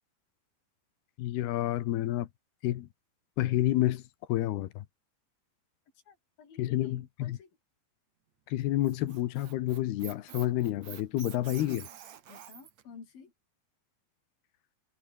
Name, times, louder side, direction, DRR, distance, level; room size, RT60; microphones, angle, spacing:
voice 1, 1.2-2.3 2.6-2.9 3.4-4.0 4.3-4.9 6.6-7.4 8.5-11.9, left 14 dB, 85° left, 3.2 m, -29 dB
voice 2, 5.9-7.5 12.3-13.3, left 6 dB, 65° left, 6.6 m, -52 dB
Squeak, 8.6-12.8, right 10 dB, 50° right, 2.6 m, -48 dB
omnidirectional pair, 4.5 m